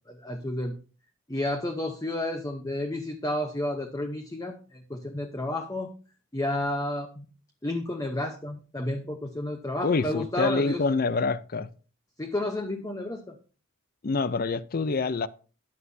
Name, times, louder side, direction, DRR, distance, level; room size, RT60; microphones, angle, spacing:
voice 1, 0.1-0.7 1.3-5.9 6.3-7.3 7.6-10.8 12.2-13.4, left 1 dB, 15° left, 0.8 m, -31 dB
voice 2, 9.8-11.7 14.0-15.3, left 4 dB, 40° left, 0.5 m, -26 dB
14.0 x 9.8 x 2.7 m
head